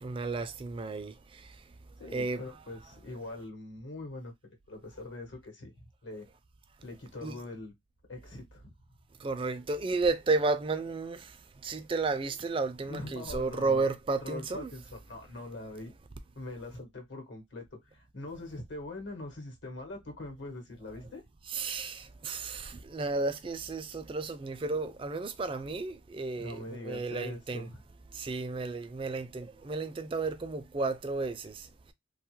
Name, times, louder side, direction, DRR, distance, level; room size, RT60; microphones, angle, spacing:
voice 1, 0.0-1.1 2.1-2.4 7.2-7.4 9.2-11.2 11.6-14.7 21.5-27.7 28.2-31.5, right 3 dB, 25° right, 0.3 m, -32 dB
voice 2, 2.0-5.7 6.0-6.2 6.8-7.7 8.1-8.7 12.9-13.9 14.2-15.9 16.3-17.6 17.9-21.2 26.4-27.8, left 2 dB, 70° left, 1.1 m, -43 dB
2.7 x 2.3 x 3.0 m
head